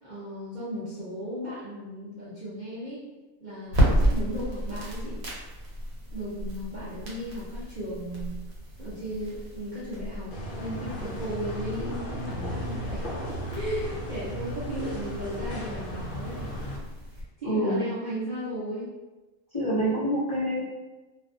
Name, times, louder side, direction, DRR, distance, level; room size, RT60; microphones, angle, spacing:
voice 1, 0.0-3.0 3.4-5.3 6.1-8.4 8.8-10.3 10.6-16.5 17.4-18.9, equal, 45° right, -11 dB, 0.6 m, -35 dB
sound 1, 3.7-17.2, equal, 85° right, 1.2 m, -32 dB
sound 2, 10.3-16.8, equal, 75° left, 0.5 m, -35 dB
voice 2, 17.5-17.8 19.5-20.6, right 1 dB, 35° left, -11 dB, 0.7 m, -26 dB
2.4 x 2.2 x 2.5 m, 1.1 s
omnidirectional pair, 1.5 m